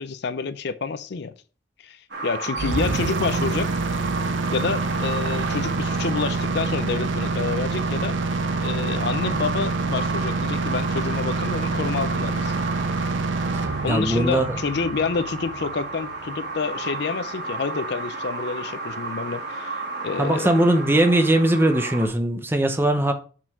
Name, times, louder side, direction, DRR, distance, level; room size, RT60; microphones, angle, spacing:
voice 1, 0.0-1.3 1.8-3.7 4.5-8.2 8.6-12.6 13.8-20.7, left 5 dB, 60° left, 0.4 m, -28 dB
sound 1, 2.1-22.1, right 3 dB, 60° right, 1.8 m, -33 dB
sound 2, 2.6-16.5, right 3 dB, 80° right, 0.6 m, -27 dB
voice 2, 13.5-14.6 20.2-23.1, right 1 dB, 10° right, 0.7 m, -20 dB
5.6 x 4.9 x 4.6 m
head